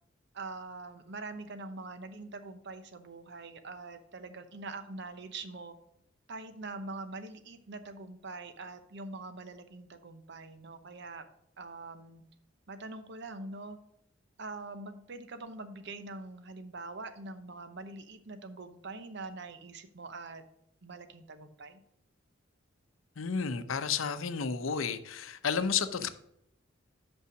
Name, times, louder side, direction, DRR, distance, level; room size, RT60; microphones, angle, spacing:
voice 1, 0.3-5.8 6.3-11.2 11.6-12.2 12.7-13.8 14.4-20.4 20.8-21.8, right 3 dB, 60° right, 0.8 m, -44 dB
voice 2, 23.2-26.1, left 6 dB, 85° left, 0.7 m, -31 dB
5.6 x 5.5 x 6.2 m
head